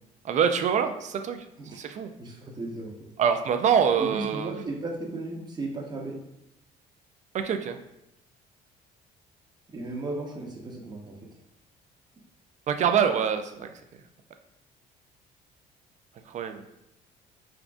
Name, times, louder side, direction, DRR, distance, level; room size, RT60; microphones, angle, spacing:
voice 1, 0.2-1.5 1.7-2.1 3.2-4.5 7.3-7.8 12.7-13.7 16.3-16.6, right 7 dB, 45° right, 7 dB, 0.4 m, -25 dB
voice 2, 2.2-2.9 4.0-6.2 9.7-11.1, right 2 dB, 25° right, -1 dB, 0.9 m, -35 dB
3.6 x 3.6 x 2.5 m, 0.86 s
cardioid pair, 110°, 17 cm